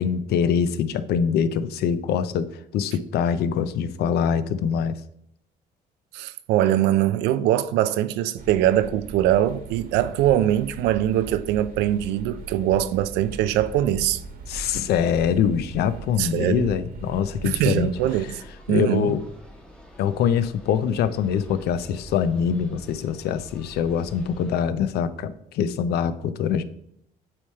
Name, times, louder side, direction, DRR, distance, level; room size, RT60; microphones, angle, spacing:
voice 1, 0.0-5.0 14.5-19.2 20.0-26.6, left 7 dB, 70° left, 0.5 m, -24 dB
voice 2, 6.1-14.2 14.6-14.8 16.2-16.7 17.4-18.3 18.7-19.2, right 12 dB, 90° right, 0.4 m, -22 dB
sound 1, 8.4-18.1, right 4 dB, 60° right, 1.4 m, -39 dB
sound 2, 17.9-24.6, equal, 5° left, 1.1 m, -46 dB
8.7 x 3.3 x 4.3 m
cardioid pair, 110°, 17 cm